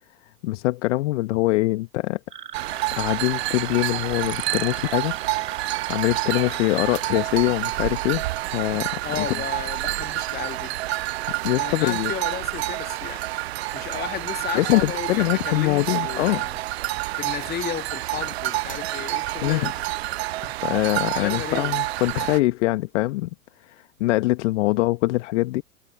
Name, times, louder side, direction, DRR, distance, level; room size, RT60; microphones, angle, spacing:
voice 1, 0.4-2.2 2.9-5.1 5.9-8.2 8.5-8.9 9.2-9.3 11.4-12.1 14.5-16.4 19.4-19.7 20.6-23.3 23.6-25.6, left 19 dB, 50° left, 1.5 m, -23 dB
sound 1, 2.3-7.1, right 7 dB, 75° right, 2.5 m, -39 dB
Flock of sheeps, 2.5-22.4, right 16 dB, 45° right, 0.4 m, -28 dB
voice 2, 9.0-10.7 11.5-13.3 13.7-16.6 17.1-19.8 21.1-21.7, left 9 dB, 20° left, 2.4 m, -33 dB
figure-of-eight pair, 100°, 47 cm